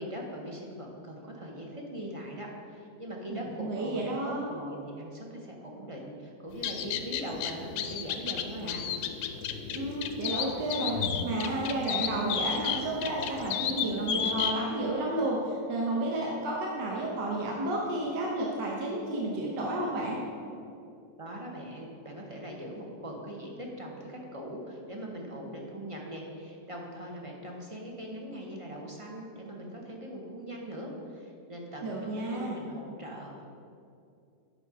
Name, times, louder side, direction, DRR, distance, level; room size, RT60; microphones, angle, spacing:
voice 1, 0.0-8.9 21.2-33.4, equal, 35° right, -1 dB, 0.5 m, -41 dB
voice 2, 3.3-4.5 9.7-10.9 11.2-20.2 31.8-32.6, right 1 dB, 75° right, -2 dB, 1.7 m, -31 dB
sound 1, 6.5-14.5, left 7 dB, 85° left, 1.3 m, -33 dB
8.9 x 6.0 x 4.8 m, 2.6 s
omnidirectional pair, 2.0 m